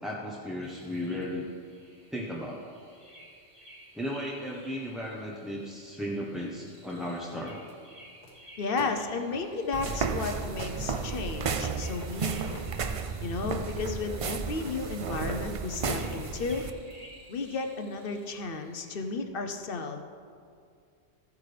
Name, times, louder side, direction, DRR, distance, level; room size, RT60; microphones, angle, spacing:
voice 1, 0.0-1.5 2.1-2.7 3.9-7.6, equal, ahead, -4 dB, 0.7 m, -35 dB
sound 1, 0.6-19.1, right 1 dB, 25° right, 2.6 m, -55 dB
sound 2, 8.2-15.8, left 1 dB, 90° left, 2.1 m, -50 dB
voice 2, 8.6-12.6 13.2-16.6 17.3-20.0, left 4 dB, 55° left, 6 dB, 0.9 m, -33 dB
sound 3, 9.7-16.7, right 5 dB, 60° right, 0.3 m, -33 dB
14.5 x 8.3 x 3.3 m, 2.2 s
omnidirectional pair, 1.2 m